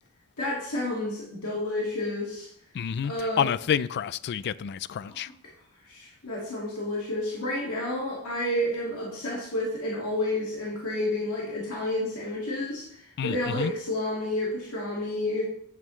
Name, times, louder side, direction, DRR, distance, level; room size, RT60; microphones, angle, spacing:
voice 1, 0.4-2.5 3.0-3.4 5.0-5.2 5.9-15.5, left 1 dB, 85° left, 2.1 m, -30 dB
voice 2, 2.7-5.3 13.2-13.7, left 8 dB, 50° left, 0.3 m, -29 dB
11.0 x 8.3 x 3.1 m
head